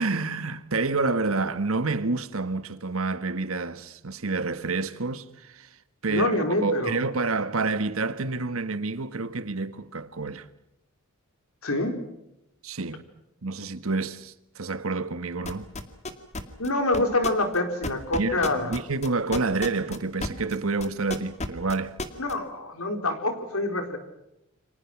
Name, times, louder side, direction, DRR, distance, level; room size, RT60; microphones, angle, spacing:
voice 1, 0.0-5.7 6.0-10.5 12.6-13.0 13.4-15.7 18.2-22.0, right 3 dB, 70° right, 1.5 m, -28 dB
voice 2, 6.1-7.0 11.6-11.9 16.6-18.7 22.2-24.0, left 2 dB, 80° left, 4.3 m, -26 dB
sound 1, 15.5-20.6 20.8-22.3, left 2 dB, 30° left, 2.2 m, -32 dB
30.0 x 25.5 x 6.0 m
head